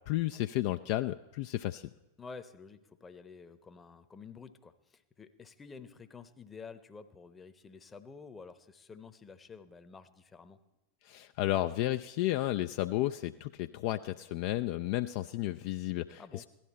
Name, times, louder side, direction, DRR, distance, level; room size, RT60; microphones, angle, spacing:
voice 1, 0.1-1.9 11.0-16.4, left 15 dB, 45° left, 9 dB, 0.3 m, -32 dB
voice 2, 2.2-10.6 16.1-16.5, left 5 dB, 15° left, 11 dB, 0.8 m, -50 dB
16.5 x 12.0 x 4.1 m, 1.0 s
figure-of-eight pair, 90°, 0 cm